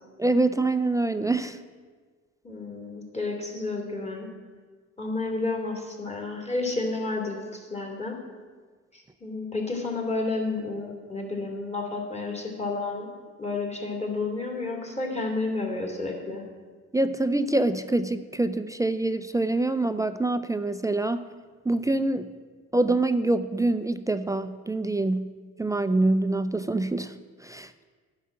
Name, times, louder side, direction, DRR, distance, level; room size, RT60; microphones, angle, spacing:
voice 1, 0.2-1.6 16.9-21.2 21.7-22.3 22.7-25.3 25.6-27.1 27.4-27.8, right 2 dB, 10° right, 10 dB, 0.4 m, -25 dB
voice 2, 2.4-4.3 5.0-8.2 8.9-13.1 13.4-16.4, left 3 dB, 20° left, 2 dB, 2.5 m, -31 dB
10.0 x 5.7 x 7.6 m, 1.5 s
cardioid pair, 90°, 30 cm